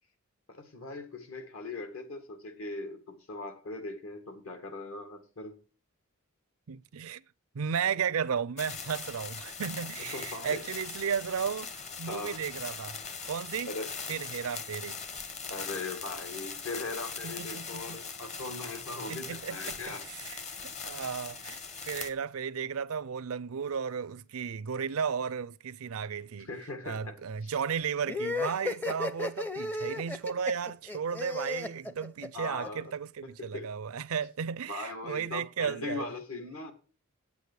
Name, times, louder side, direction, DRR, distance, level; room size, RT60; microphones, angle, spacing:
voice 1, 0.5-5.6 10.1-10.6 12.1-12.4 13.7-13.9 15.5-20.0 26.4-27.1 27.4-27.5 32.3-32.8 33.4-33.7 34.7-36.7, left 2 dB, 70° left, 2.0 m, -39 dB
voice 2, 6.7-7.2 7.5-13.0 13.3-13.7 14.1-15.0 17.2-18.0 19.1-26.5 26.8-36.1, right 7 dB, 75° right, 0.5 m, -34 dB
sound 1, 8.6-22.1, left 5 dB, 30° left, 0.9 m, -41 dB
sound 2, 28.1-32.7, left 3 dB, 10° left, 0.5 m, -34 dB
8.9 x 8.3 x 6.2 m
head